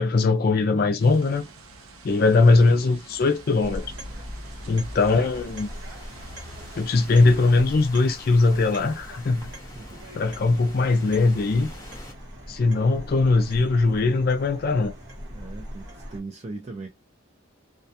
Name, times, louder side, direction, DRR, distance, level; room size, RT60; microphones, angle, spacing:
voice 1, 0.0-1.5 2.0-3.9 4.7-5.7 6.8-9.5 10.1-11.7 12.5-14.9, left 3 dB, 45° left, 0.3 m, -20 dB
sound 1, 1.0-7.6, right 1 dB, 85° right, 0.7 m, -45 dB
Thunderstorm / Rain, 3.1-12.1, left 1 dB, 15° left, 0.8 m, -47 dB
sound 2, 3.6-16.2, equal, 55° right, 1.1 m, -41 dB
voice 2, 9.7-10.1 15.3-16.9, right 3 dB, 30° right, 0.5 m, -39 dB
2.3 x 2.3 x 2.7 m
head